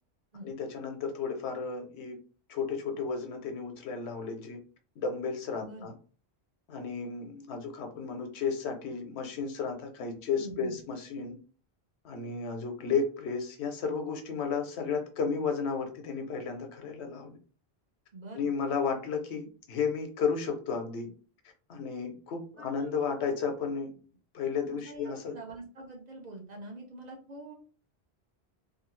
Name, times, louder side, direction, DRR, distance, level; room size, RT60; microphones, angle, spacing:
voice 1, 0.4-2.2 2.5-4.6 5.0-5.9 6.7-11.4 12.0-17.4 18.3-21.1 21.7-24.0 24.3-25.4, left 5 dB, 85° left, 4 dB, 1.0 m, -33 dB
voice 2, 5.6-5.9 10.4-10.8 18.1-18.5 22.6-22.9 24.6-27.5, right 2 dB, 45° right, 0 dB, 0.7 m, -45 dB
2.7 x 2.3 x 3.0 m, 0.39 s
omnidirectional pair, 1.1 m